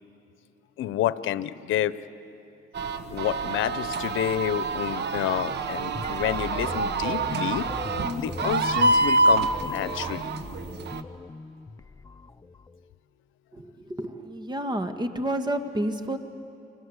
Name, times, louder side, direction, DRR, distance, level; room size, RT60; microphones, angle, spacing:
voice 1, 0.8-2.0 3.1-7.7 8.2-10.4, left 12 dB, 85° left, 15 dB, 0.8 m, -29 dB
sound 1, 2.7-11.0, right 3 dB, 60° right, 1.3 m, -27 dB
sound 2, 5.9-12.8, left 3 dB, 15° left, 0.6 m, -38 dB
voice 2, 13.5-16.2, right 1 dB, 20° right, 7 dB, 1.9 m, -30 dB
29.5 x 24.5 x 8.1 m, 2.7 s
cardioid pair, 90°, 20 cm